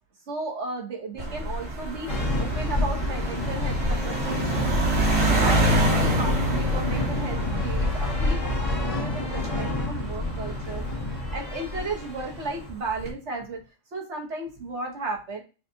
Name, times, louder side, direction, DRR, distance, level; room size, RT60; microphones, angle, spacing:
voice 1, 0.3-4.9 5.2-8.5 8.8-10.8 11.3-13.6 13.9-15.4, right 3 dB, 65° right, 1 dB, 1.4 m, -34 dB
sound 1, 1.2-11.9 12.7-13.1, right 1 dB, 80° right, 2.5 m, -28 dB
sound 2, 2.1-12.8, left 2 dB, 75° left, 1.7 m, -28 dB
6.5 x 2.4 x 2.7 m, 0.32 s
omnidirectional pair, 1.3 m